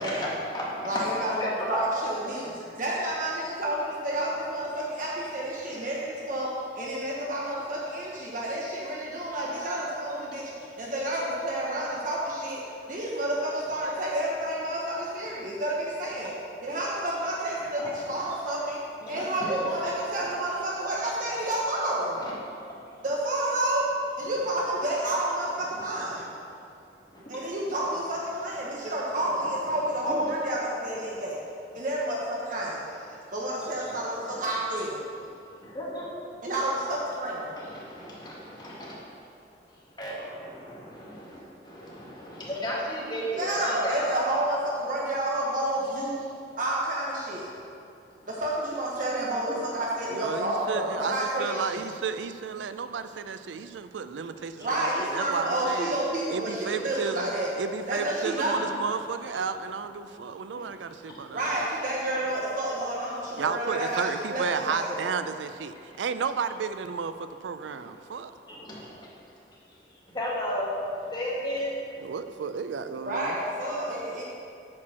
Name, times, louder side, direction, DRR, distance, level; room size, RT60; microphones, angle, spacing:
voice 1, 0.0-2.0 2.4-2.8 9.1-9.2 16.2-16.3 17.8-18.0 19.0-19.9 20.2-20.3 22.1-22.3 22.7-22.9 25.5-26.2 27.1-27.2 29.2-30.3 33.5-34.5 35.6-36.1 37.6-39.0 39.5-44.2 48.1-48.3 49.5-49.6 54.3-54.7 58.4-58.9 59.3-59.4 60.3-60.6 61.0-61.2 62.0-62.3 63.9-64.0 65.8-66.0 67.7-72.1, equal, 25° left, -6 dB, 1.9 m, -36 dB
voice 2, 0.9-2.5 2.8-6.5 6.7-16.3 16.6-18.8 19.1-22.2 23.0-26.3 27.3-31.4 31.7-33.0 33.3-35.0 36.4-37.7 40.2-40.3 43.4-46.3 46.6-47.5 48.3-51.8 54.6-57.5 57.9-58.7 61.3-65.1 73.0-74.2, right 1 dB, 50° right, -4 dB, 1.0 m, -30 dB
voice 3, 50.1-55.9 56.3-57.3 57.6-61.4 63.4-68.3 72.0-73.4, right 6 dB, 85° right, 11 dB, 0.4 m, -33 dB
8.6 x 4.5 x 6.1 m, 2.5 s
head